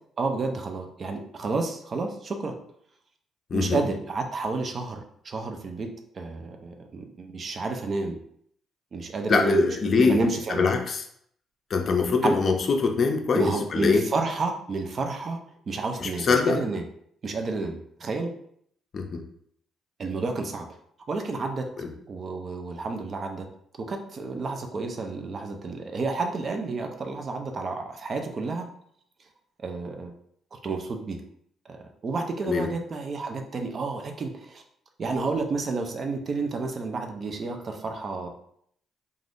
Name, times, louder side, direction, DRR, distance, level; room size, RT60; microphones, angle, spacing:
voice 1, 0.2-2.5 3.5-8.2 8.9-10.7 12.2-12.4 13.3-15.4 15.7-16.8 17.2-18.3 20.0-20.7 21.1-21.7 22.1-23.5 23.8-28.7 29.6-30.1 30.5-31.2 31.7-34.6 35.0-38.3, right 3 dB, 45° right, 4 dB, 0.5 m, -30 dB
voice 2, 3.5-3.8 9.3-10.2 10.5-11.0 11.7-14.0 16.0-16.6 18.9-19.2 21.8-21.9 32.4-32.7, left 4 dB, 50° left, 4 dB, 0.5 m, -23 dB
3.3 x 2.4 x 2.5 m, 0.67 s
cardioid pair, 90°, 0 cm